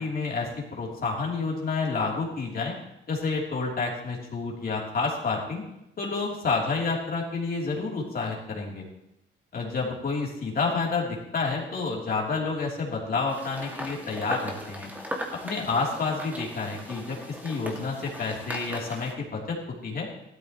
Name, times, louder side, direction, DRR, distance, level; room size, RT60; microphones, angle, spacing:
voice 1, 0.0-2.7 3.1-5.6 6.0-8.8 9.5-14.9 15.4-17.2 17.4-19.6 19.8-20.1, left 4 dB, 50° left, -2 dB, 3.3 m, -29 dB
sound 1, 13.3-19.1, equal, 10° right, 2.1 m, -38 dB
15.5 x 13.0 x 3.1 m, 0.84 s
cardioid pair, 90°, 20 cm